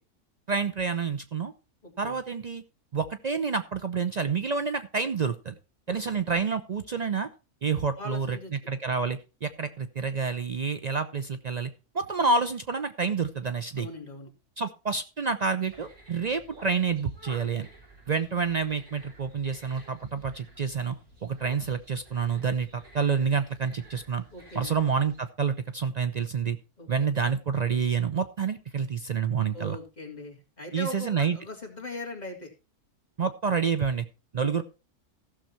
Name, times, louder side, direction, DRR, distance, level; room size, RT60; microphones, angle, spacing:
voice 1, 0.5-1.5 2.0-2.6 2.9-5.5 5.9-7.3 7.6-8.4 8.7-13.9 14.6-17.7 18.1-21.0 21.2-24.2 24.5-26.6 26.9-29.8 30.7-31.4 33.2-34.1 34.3-34.6, right 5 dB, 90° right, 10 dB, 0.3 m, -28 dB
voice 2, 1.8-2.2 5.9-6.1 8.0-8.5 13.8-14.3 24.3-24.8 26.8-27.1 29.5-32.5 34.4-34.5, left 1 dB, 25° left, 0 dB, 2.7 m, -40 dB
sound 1, 15.6-25.2, right 2 dB, 70° right, 6.0 m, -52 dB
15.0 x 6.5 x 4.4 m, 0.31 s
omnidirectional pair, 1.6 m